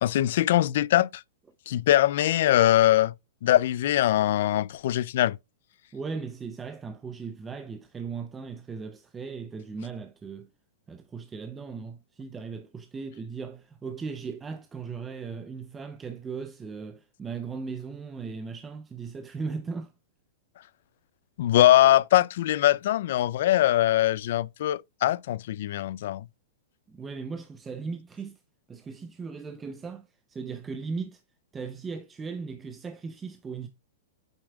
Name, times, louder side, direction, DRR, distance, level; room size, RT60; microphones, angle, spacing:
voice 1, 0.0-1.2 1.7-3.1 3.4-5.4 21.4-26.2, left 13 dB, 60° left, 0.4 m, -22 dB
voice 2, 5.9-10.5 10.9-19.9 26.9-28.4 28.7-31.2 31.5-33.7, right 5 dB, 15° right, 0.6 m, -37 dB
8.1 x 7.1 x 2.3 m
hypercardioid pair, 155°, 0 cm